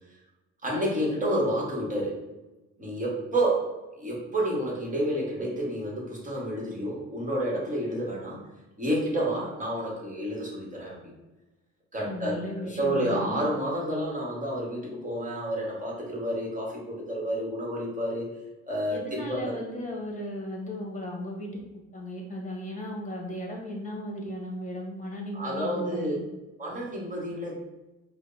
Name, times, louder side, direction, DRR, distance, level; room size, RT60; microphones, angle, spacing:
voice 1, 0.6-2.2 2.8-3.7 4.0-8.4 8.8-11.1 11.9-18.4 18.7-19.6 25.3-26.1 26.6-27.6, right 1 dB, 25° right, -3 dB, 1.4 m, -30 dB
voice 2, 12.0-13.4 18.9-21.6 21.9-26.2, left 1 dB, 25° left, 0 dB, 1.1 m, -36 dB
4.9 x 2.2 x 2.7 m, 1.1 s
cardioid pair, 90°, 30 cm